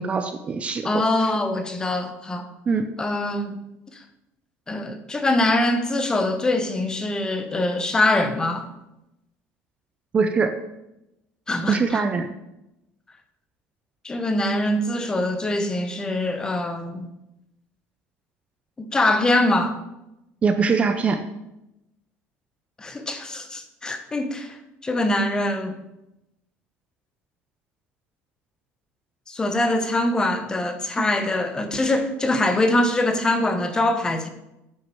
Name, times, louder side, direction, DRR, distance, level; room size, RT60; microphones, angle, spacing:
voice 1, 0.0-1.0 2.7-2.9 10.1-10.5 11.7-12.3 20.4-21.2 31.0-31.1, right 5 dB, 25° right, 7 dB, 0.6 m, -22 dB
voice 2, 0.8-2.5 3.0-3.6 3.9-4.0 4.7-8.7 11.5-12.0 14.0-17.1 18.8-19.8 22.8-25.8 29.3-34.3, left 1 dB, 15° left, 8 dB, 1.0 m, -23 dB
9.4 x 6.4 x 7.1 m, 0.90 s
cardioid pair, 155°, 5 cm